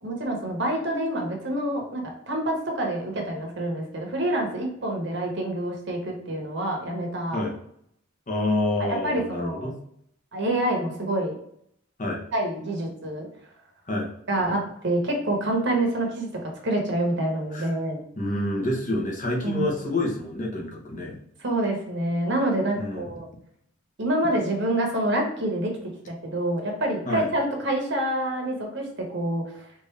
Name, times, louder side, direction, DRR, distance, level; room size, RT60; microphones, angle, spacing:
voice 1, 0.0-7.4 8.8-9.7 10.3-11.3 12.3-13.3 14.3-16.3 16.6-18.0 19.4-19.7 21.4-23.3 24.0-25.7 26.2-28.9 29.1-29.7, right 1 dB, 65° right, 1 dB, 1.1 m, -27 dB
voice 2, 8.3-9.8 12.0-12.2 13.9-14.1 17.5-17.7 18.2-21.2 22.8-23.1 27.0-27.2, left 2 dB, 40° left, 0 dB, 1.0 m, -27 dB
4.5 x 2.6 x 3.2 m, 0.71 s
head